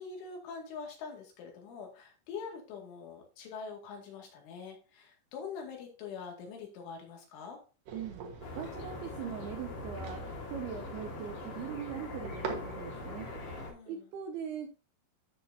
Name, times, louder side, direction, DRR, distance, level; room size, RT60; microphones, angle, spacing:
voice 1, 0.0-7.6 13.7-14.1, left 5 dB, 80° left, 1 dB, 4.6 m, -44 dB
sound 1, 7.9-13.7, right 5 dB, 65° right, 2.3 m, -45 dB
sound 2, 8.4-13.7, left 3 dB, 55° left, 4.6 m, -43 dB
voice 2, 8.6-14.8, right 8 dB, 90° right, 6 dB, 2.2 m, -41 dB
12.5 x 5.9 x 2.7 m, 0.33 s
omnidirectional pair, 5.5 m